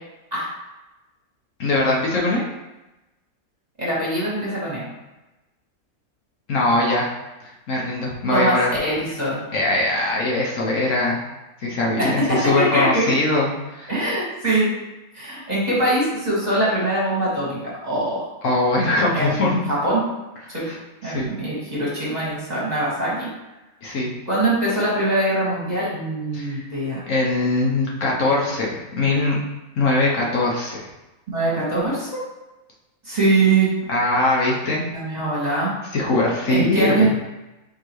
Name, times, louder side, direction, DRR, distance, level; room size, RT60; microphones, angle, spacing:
voice 1, 1.6-2.4 6.5-7.1 7.4-8.7 9.5-11.2 11.6-13.9 18.4-19.6 20.5-20.8 21.0-21.3 23.8-24.1 26.3-26.7 27.1-29.4 29.7-30.9 33.9-34.8 35.9-37.1, left 2 dB, 65° left, -3 dB, 1.1 m, -21 dB
voice 2, 3.8-4.8 8.3-8.6 8.8-9.4 12.0-13.1 13.9-14.7 15.1-18.2 19.1-20.0 20.5-20.6 21.0-23.3 24.3-27.0 31.3-32.2 33.0-33.7 34.9-35.7 36.5-37.1, right 2 dB, 30° right, -7 dB, 1.4 m, -22 dB
4.6 x 3.7 x 3.1 m, 1.0 s
omnidirectional pair, 1.5 m